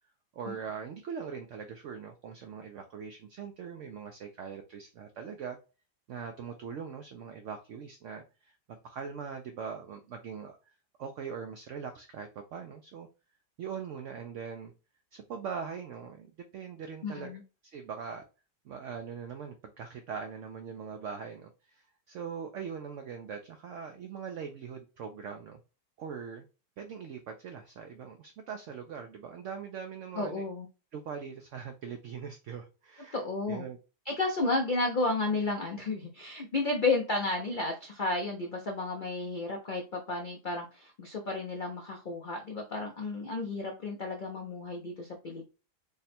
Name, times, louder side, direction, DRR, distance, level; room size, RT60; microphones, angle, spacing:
voice 1, 0.3-5.6 6.1-8.6 8.8-13.1 13.6-14.7 15.1-18.2 18.6-25.6 26.0-26.4 26.8-30.4 30.9-33.2 33.5-33.8, right 6 dB, 75° right, 0.7 m, -41 dB
voice 2, 17.0-17.4 30.1-30.7 33.1-33.7 34.1-45.4, left 3 dB, 85° left, 0.4 m, -32 dB
3.6 x 2.1 x 4.2 m
omnidirectional pair, 1.8 m